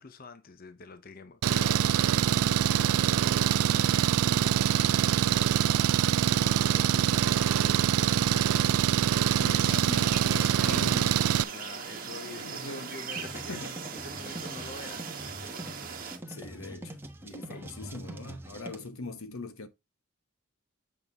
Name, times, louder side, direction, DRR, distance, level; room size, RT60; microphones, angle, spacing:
voice 1, 0.0-6.0 6.3-9.8 10.5-15.7 17.5-17.7, left 3 dB, 40° left, 0.7 m, -47 dB
Engine, 1.4-11.4, right 9 dB, 85° right, 0.4 m, -24 dB
voice 2, 9.3-11.1 12.3-12.9 13.5-13.7 16.3-19.7, left 2 dB, 75° left, 1.1 m, -41 dB
sound 1, 9.6-16.2, right 6 dB, 40° right, 1.4 m, -39 dB
sound 2, 13.1-18.9, right 1 dB, 10° right, 1.0 m, -44 dB
8.3 x 5.3 x 3.5 m
head